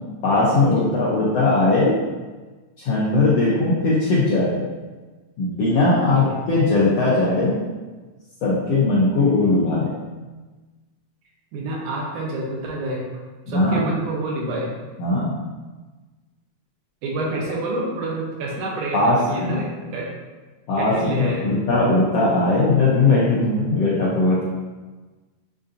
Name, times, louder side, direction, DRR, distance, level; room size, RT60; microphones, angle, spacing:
voice 1, 0.2-2.0 2.8-4.6 5.4-7.6 8.4-9.9 13.5-13.8 15.0-15.4 18.9-19.7 20.7-24.4, left 2 dB, 80° left, -7 dB, 1.4 m, -19 dB
voice 2, 11.5-13.0 13.5-14.7 17.0-20.1 20.8-21.6, right 2 dB, 80° right, -3 dB, 2.3 m, -28 dB
7.1 x 2.6 x 2.5 m, 1.3 s
omnidirectional pair, 3.7 m